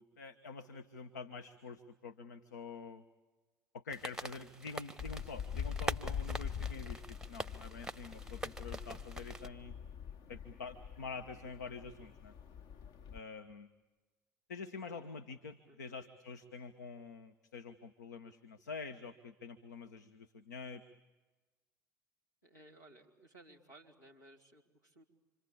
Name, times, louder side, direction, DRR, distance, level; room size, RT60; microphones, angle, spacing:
voice 1, 0.0-3.0 3.7-9.8 10.3-12.3 13.1-13.7 14.5-20.9, left 4 dB, 75° left, 9 dB, 0.9 m, -47 dB
sound 1, 3.9-9.5, right 2 dB, 5° right, 0.8 m, -44 dB
sound 2, 5.0-13.2, left 8 dB, 50° left, 1.1 m, -44 dB
voice 2, 22.4-25.0, right 1 dB, 90° left, -1 dB, 3.1 m, -59 dB
27.0 x 26.0 x 8.5 m, 1.2 s
figure-of-eight pair, 60°, 9 cm